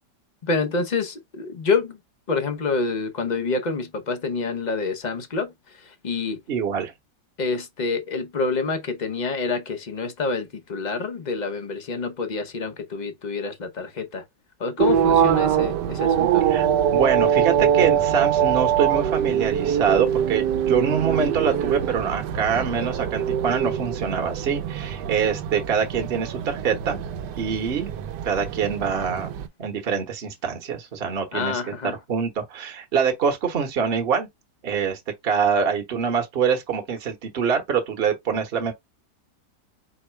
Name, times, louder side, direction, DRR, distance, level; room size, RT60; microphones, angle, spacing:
voice 1, 0.4-2.0 2.3-5.5 5.8-6.4 7.4-14.2 14.6-16.4 31.3-32.0, left 4 dB, 45° left, 0.6 m, -27 dB
voice 2, 6.5-6.9 16.5-27.0 27.4-27.9 28.2-29.3 29.6-31.6 32.1-34.3 34.6-38.7, right 6 dB, 40° right, 1.1 m, -25 dB
sound 1, 14.8-29.5, right 9 dB, 75° right, 1.1 m, -23 dB
4.6 x 2.0 x 4.4 m
omnidirectional pair, 1.9 m